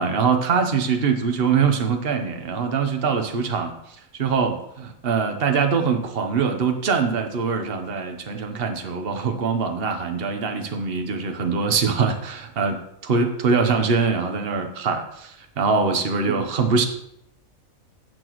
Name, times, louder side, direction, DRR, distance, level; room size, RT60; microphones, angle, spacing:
voice 1, 0.0-3.7 4.2-12.8 13.0-16.9, right 5 dB, 45° right, 5 dB, 1.2 m, -23 dB
15.5 x 6.0 x 3.1 m, 0.77 s
omnidirectional pair, 1.4 m